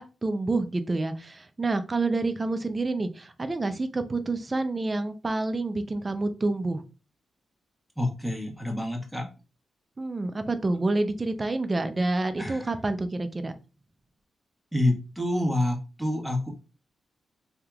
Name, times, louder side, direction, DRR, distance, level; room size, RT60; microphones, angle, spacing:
voice 1, 0.0-6.8 10.0-13.5, right 2 dB, 35° right, 9 dB, 0.5 m, -28 dB
voice 2, 8.0-9.2 12.4-12.7 14.7-16.5, left 1 dB, 5° right, 1 dB, 1.4 m, -27 dB
3.4 x 2.8 x 2.4 m, 0.31 s
supercardioid pair, 50°, 0 cm